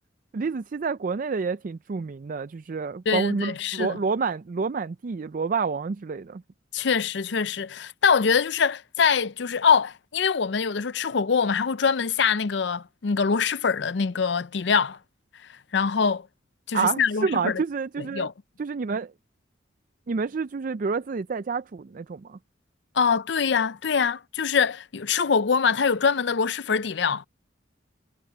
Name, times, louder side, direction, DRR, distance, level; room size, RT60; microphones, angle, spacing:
voice 1, 0.3-6.4 16.7-18.3 18.6-19.1 20.1-22.4, right 5 dB, 45° right, 0.4 m, -28 dB
voice 2, 3.1-4.0 6.7-15.0 15.7-16.3 16.7-17.6 18.0-18.3 22.9-27.3, left 6 dB, 65° left, 0.5 m, -24 dB
head